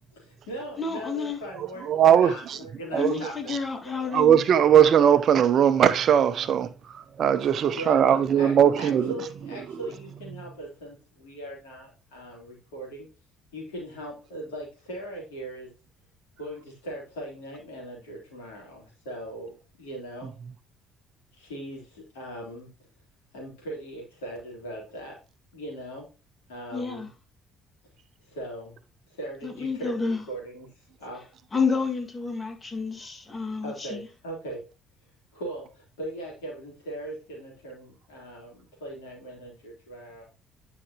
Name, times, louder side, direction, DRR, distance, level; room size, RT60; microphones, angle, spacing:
voice 1, 0.1-3.5 3.8-4.0 7.4-7.5 7.8-8.0 8.4-13.1 13.5-15.7 16.4-20.3 21.3-22.7 23.3-25.2 25.5-26.1 26.5-27.1 28.3-28.7 29.1-30.7 31.0-31.3 33.6-34.6 35.3-40.2, right 1 dB, 70° left, 3.7 m, -39 dB
voice 2, 0.8-1.4 3.0-4.4 26.7-27.1 29.4-30.2 31.5-34.1, left 5 dB, 25° left, 2.1 m, -29 dB
voice 3, 1.9-2.6 2.9-3.2 3.5-3.6 4.1-9.1, right 9 dB, 50° right, 0.7 m, -20 dB
9.9 x 5.9 x 3.0 m
figure-of-eight pair, 50°, 0 cm